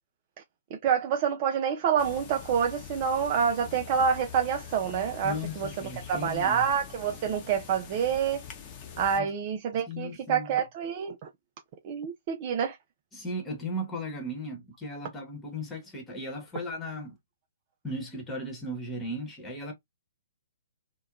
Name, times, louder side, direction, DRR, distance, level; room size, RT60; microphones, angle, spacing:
voice 1, 0.7-5.7 6.1-8.4 9.0-11.3 11.8-12.8, right 7 dB, 40° right, 0.4 m, -27 dB
sound 1, 2.0-9.2, left 8 dB, 30° left, 0.7 m, -44 dB
voice 2, 5.2-6.7 9.2-9.3 9.7-10.6 13.1-17.2 17.8-19.7, left 1 dB, 10° left, 1.0 m, -36 dB
2.7 x 2.2 x 2.3 m
figure-of-eight pair, 125°, 0 cm